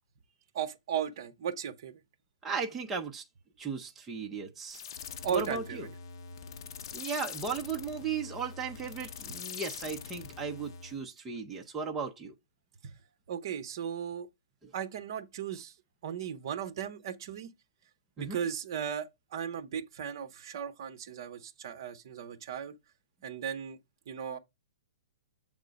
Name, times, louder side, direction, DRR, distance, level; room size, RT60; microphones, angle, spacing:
voice 1, 0.5-2.0 5.2-5.9 12.8-13.0 13.3-14.3 14.7-15.7 16.0-17.5 18.2-22.7 23.2-23.8 24.1-24.4, right 8 dB, 50° right, 0.8 m, -36 dB
voice 2, 2.4-3.3 3.6-4.8 5.3-5.9 6.9-12.3 14.6-14.7 18.2-18.4, right 5 dB, 10° right, 0.6 m, -36 dB
sound 1, 4.7-11.0, left 6 dB, 50° left, 0.7 m, -44 dB
7.6 x 3.6 x 5.1 m
hypercardioid pair, 165°, 3 cm